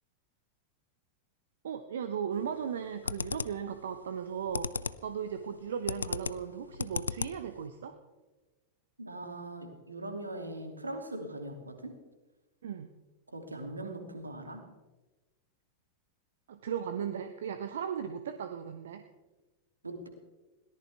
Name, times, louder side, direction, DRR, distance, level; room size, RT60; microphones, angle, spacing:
voice 1, 1.6-4.7 5.0-7.9 12.6-12.9 16.5-19.0, right 8 dB, 60° right, 9 dB, 1.0 m, -36 dB
sound 1, 2.3-2.7 3.0-3.7 4.2-5.1 5.4-7.6, left 5 dB, 75° left, 0.5 m, -35 dB
voice 2, 9.0-11.9 13.3-14.6 19.8-20.1, right 1 dB, 80° right, 5 dB, 2.6 m, -40 dB
21.5 x 18.0 x 3.5 m, 1.2 s
figure-of-eight pair, 90°, 0 cm